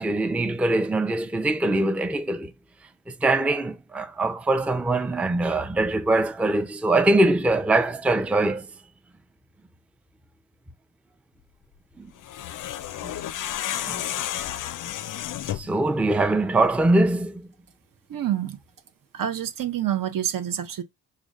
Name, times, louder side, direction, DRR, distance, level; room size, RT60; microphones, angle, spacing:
voice 1, 0.0-2.5 3.1-8.7 12.0-12.1 13.0-13.1 13.9-14.0 15.6-17.4, right 2 dB, 5° right, 0.5 m, -23 dB
sound 1, 12.2-15.8, left 11 dB, 45° left, 0.5 m, -31 dB
voice 2, 18.1-18.6 19.1-20.8, right 11 dB, 50° right, 0.7 m, -27 dB
4.9 x 2.2 x 3.6 m
supercardioid pair, 50°, 44 cm